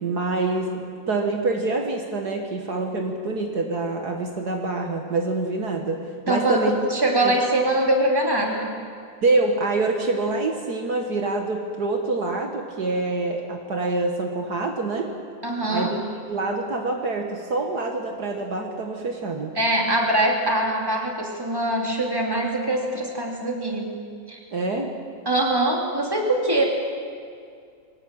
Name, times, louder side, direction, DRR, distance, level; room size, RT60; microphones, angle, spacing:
voice 1, 0.0-6.8 7.2-7.3 9.2-15.1 15.7-16.0 16.3-19.5 24.5-24.9, right 3 dB, 60° right, 3 dB, 2.1 m, -26 dB
voice 2, 6.3-8.7 15.4-15.9 19.5-23.9 24.3-24.4 25.2-26.6, right 1 dB, 10° right, 0 dB, 3.0 m, -23 dB
23.0 x 18.0 x 9.0 m, 2.2 s
omnidirectional pair, 2.0 m